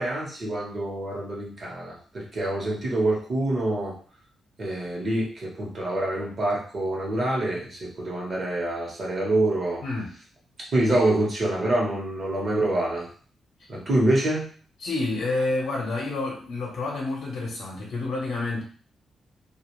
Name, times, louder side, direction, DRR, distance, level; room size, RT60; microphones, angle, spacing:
voice 1, 0.0-3.9 4.6-9.8 10.7-13.1 13.7-14.5, right 1 dB, 40° right, -3 dB, 1.0 m, -26 dB
voice 2, 9.8-10.1 14.8-18.6, left 2 dB, 65° left, -3 dB, 0.7 m, -29 dB
2.5 x 2.3 x 3.0 m, 0.44 s
wide cardioid pair, 140°, 0 cm